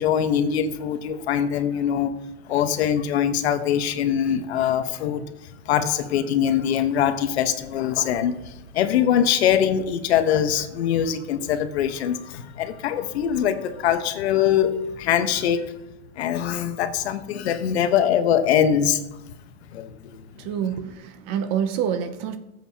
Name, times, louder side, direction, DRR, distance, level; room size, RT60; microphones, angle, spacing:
voice 1, 0.0-15.8 16.2-19.0 19.7-20.2, left 9 dB, 65° left, 1.1 m, -23 dB
voice 2, 20.3-22.4, right 8 dB, 20° right, 0.4 m, -27 dB
19.5 x 7.9 x 2.9 m
supercardioid pair, 165°, 34 cm